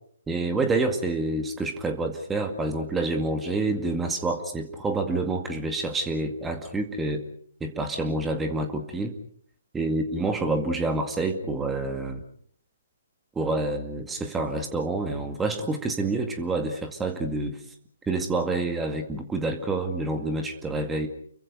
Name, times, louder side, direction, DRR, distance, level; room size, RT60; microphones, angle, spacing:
voice 1, 0.3-7.2 7.6-9.1 9.7-12.2 13.4-17.6 18.1-21.1, right 2 dB, 10° right, 5 dB, 2.1 m, -28 dB
29.5 x 23.5 x 5.2 m, 0.62 s
figure-of-eight pair, 130°, 0 cm